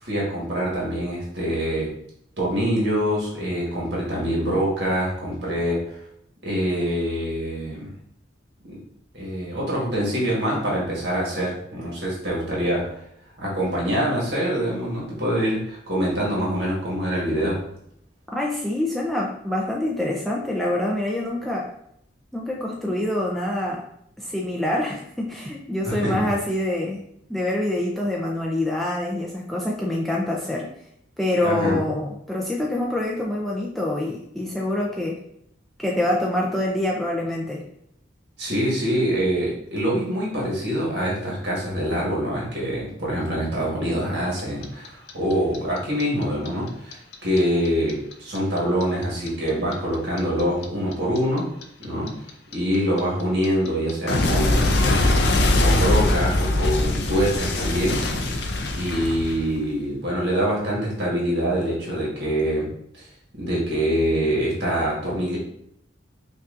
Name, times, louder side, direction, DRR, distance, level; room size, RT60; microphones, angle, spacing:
voice 1, 0.0-1.9 2.4-5.9 6.4-7.9 8.7-8.8 9.1-13.0 13.4-17.6 25.8-26.2 31.4-31.8 38.4-51.5 51.8-52.1 52.5-55.1 55.6-58.0 58.7-62.7 62.9-63.1 63.3-65.4, equal, 60° right, -4 dB, 1.4 m, -25 dB
voice 2, 18.3-21.7 22.3-23.8 24.2-27.0 27.3-30.7 31.2-35.2 35.8-37.6, left 1 dB, ahead, -3 dB, 0.3 m, -25 dB
Clock, 44.4-47.4 47.7-50.6 50.9-59.8, left 2 dB, 60° left, 0.4 m, -22 dB
5.4 x 2.3 x 2.5 m, 0.73 s
head